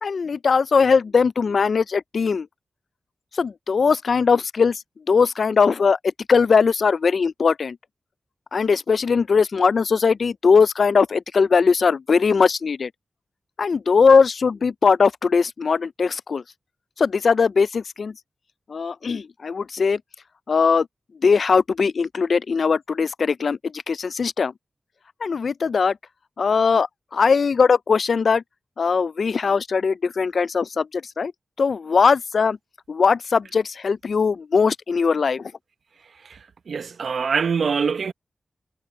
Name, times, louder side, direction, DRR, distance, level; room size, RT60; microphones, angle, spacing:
voice 1, 0.0-2.5 3.4-4.8 5.1-6.0 6.3-7.8 8.5-12.9 13.6-16.4 17.0-18.1 18.7-20.0 20.5-20.9 21.2-24.5 25.2-26.0 26.4-26.9 27.1-28.4 28.8-31.3 31.6-32.6 32.9-35.5, left 5 dB, 70° left, 0.3 m, -20 dB
voice 2, 36.2-38.1, right 5 dB, 80° right, 0.9 m, -24 dB
cardioid pair, 65°, 0 cm